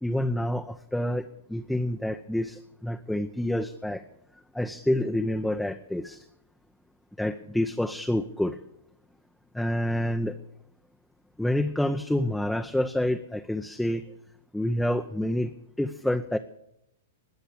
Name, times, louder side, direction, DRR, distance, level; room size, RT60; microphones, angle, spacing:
voice 1, 0.0-4.0 4.5-6.2 7.2-8.6 9.5-10.4 11.4-14.0 14.5-16.4, left 1 dB, 5° left, 6 dB, 0.7 m, -28 dB
20.0 x 6.8 x 8.6 m, 0.80 s
hypercardioid pair, 110°, 0 cm